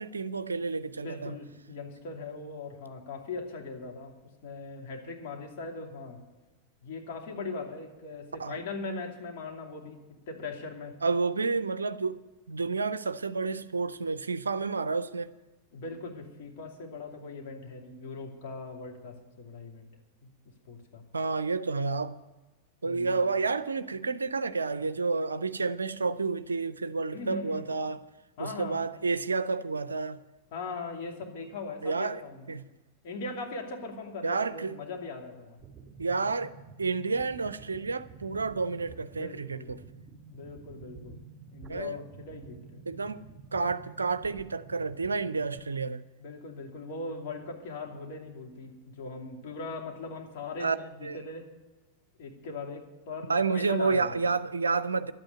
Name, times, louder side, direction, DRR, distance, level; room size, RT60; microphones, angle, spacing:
voice 1, 0.0-1.4 8.4-8.6 11.0-12.2 12.5-15.3 21.1-22.2 22.8-28.0 28.4-30.2 31.8-32.2 32.5-32.7 34.2-34.8 36.0-36.5 36.8-39.8 41.7-42.0 42.9-43.2 43.5-46.0 50.6-50.8 51.0-51.2 53.3-55.1, right 4 dB, 75° right, 0.5 m, -30 dB
voice 2, 1.0-4.1 4.4-6.2 6.8-10.0 10.3-11.0 15.7-19.9 20.2-20.3 20.7-21.0 22.8-23.2 27.1-27.7 28.4-28.8 30.5-32.5 33.0-35.6 39.1-39.9 40.3-41.2 41.5-42.8 46.2-51.5 52.2-54.1, left 3 dB, 50° left, 2.7 m, -40 dB
sound 1, 35.6-45.6, right 5 dB, 20° right, 2.5 m, -50 dB
12.0 x 8.9 x 9.4 m
figure-of-eight pair, 90°, 0 cm